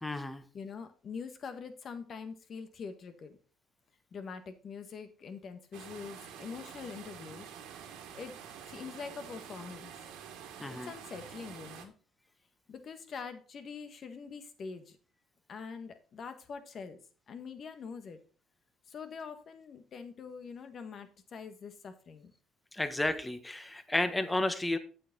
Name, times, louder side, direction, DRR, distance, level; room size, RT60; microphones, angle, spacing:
voice 1, 0.0-0.4 10.6-10.9 22.7-24.8, left 1 dB, 15° left, 10 dB, 1.3 m, -32 dB
voice 2, 0.5-3.4 4.1-7.5 8.1-8.3 8.6-9.9 10.7-11.9 12.7-15.0 15.5-17.0 17.3-18.2 18.9-22.3, left 5 dB, 50° left, 9 dB, 1.6 m, -44 dB
sound 1, 5.7-11.9, right 8 dB, 85° right, 2.0 m, -48 dB
8.3 x 8.3 x 4.2 m, 0.38 s
supercardioid pair, 85°, 0 cm